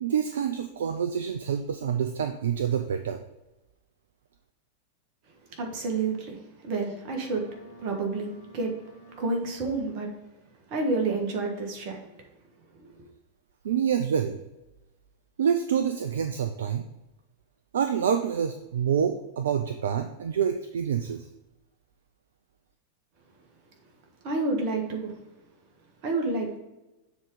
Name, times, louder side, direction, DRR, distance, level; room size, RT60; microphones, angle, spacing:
voice 1, 0.0-3.2 13.6-14.4 15.4-16.9 17.7-21.3, right 8 dB, 65° right, 8 dB, 0.4 m, -27 dB
voice 2, 5.6-8.8 9.2-10.1 10.7-12.0 12.8-13.0 24.2-25.2 26.0-26.6, right 3 dB, 45° right, 2 dB, 1.5 m, -29 dB
Boat Water vehicle, 7.2-9.9, right 3 dB, 80° left, 1.7 m, -51 dB
7.3 x 3.7 x 4.8 m, 1.0 s
figure-of-eight pair, 90°, 0 cm